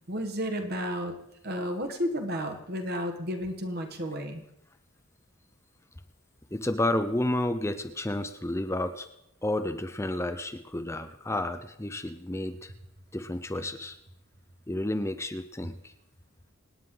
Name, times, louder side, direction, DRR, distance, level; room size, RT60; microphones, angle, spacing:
voice 1, 0.1-1.1 1.4-4.4, equal, 45° right, 5 dB, 1.6 m, -32 dB
voice 2, 6.5-9.1 9.4-12.7 13.1-14.0 14.7-15.9, left 1 dB, 10° left, 9 dB, 0.6 m, -31 dB
26.0 x 9.5 x 3.9 m, 0.84 s
head